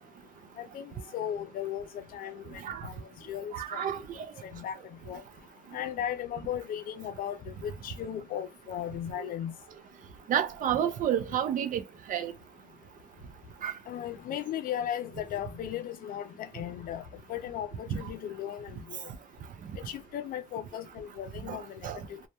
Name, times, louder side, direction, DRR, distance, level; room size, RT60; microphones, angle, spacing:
voice 1, 0.6-1.9 2.1-2.4 2.8-2.9 3.3-3.8 4.5-4.8 5.1-5.2 5.7-9.5 13.9-17.0 17.3-19.1 19.9-22.2, left 10 dB, 60° left, 0.4 m, -36 dB
voice 2, 3.5-4.0 10.3-11.8 12.1-12.3 13.6-13.7 17.9-18.0 21.5-21.6 21.8-22.0, right 9 dB, 55° right, 0.5 m, -29 dB
2.2 x 2.1 x 2.8 m
cardioid pair, 110°, 17 cm